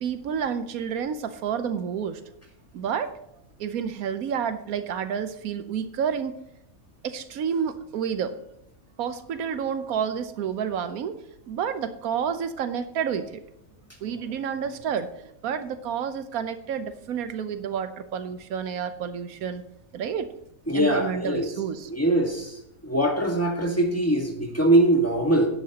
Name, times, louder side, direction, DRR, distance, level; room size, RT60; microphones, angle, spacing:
voice 1, 0.0-2.2 2.7-3.1 3.6-6.4 7.0-8.3 9.0-11.2 11.5-13.3 14.0-19.6 19.9-20.3 20.7-21.9, right 7 dB, 85° right, 10 dB, 1.2 m, -29 dB
voice 2, 20.7-21.5 21.9-22.5 22.8-25.5, right 1 dB, 10° left, 1 dB, 1.5 m, -22 dB
16.5 x 10.5 x 2.9 m, 0.80 s
omnidirectional pair, 1.5 m